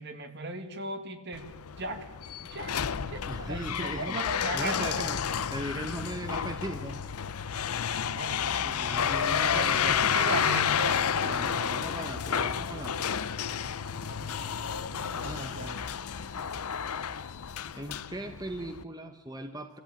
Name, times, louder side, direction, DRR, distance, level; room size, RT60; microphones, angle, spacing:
voice 1, 0.0-2.1 2.5-2.8 3.1-5.1 8.0-11.6 14.0-15.9, right 2 dB, 50° right, 7 dB, 2.0 m, -38 dB
sound 1, 1.3-18.8, left 8 dB, 80° left, 0.7 m, -31 dB
voice 2, 3.2-7.0 8.6-10.2 11.2-13.2 15.2-15.9 17.7-19.8, right 1 dB, 15° right, 6 dB, 1.1 m, -39 dB
24.5 x 15.0 x 9.1 m, 1.1 s
head